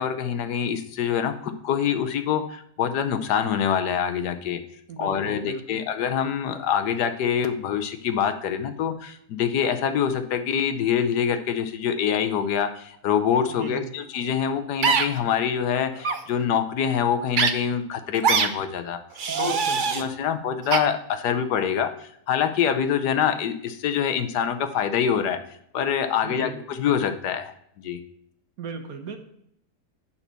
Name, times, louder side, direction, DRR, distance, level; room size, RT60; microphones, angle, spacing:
voice 1, 0.0-4.6 5.0-19.0 19.4-19.6 19.9-25.4 25.7-27.5 27.8-28.0, left 8 dB, 75° left, 8 dB, 1.3 m, -25 dB
voice 2, 4.9-5.8 13.5-13.9 19.3-20.3 26.2-26.7 28.6-29.2, right 5 dB, 60° right, 7 dB, 1.3 m, -37 dB
sound 1, 14.8-15.1 16.0-16.2 17.3-17.5 18.2-18.5 19.2-20.0 20.7-20.8, right 6 dB, 85° right, 0.4 m, -22 dB
7.2 x 5.5 x 6.8 m, 0.71 s
omnidirectional pair, 1.8 m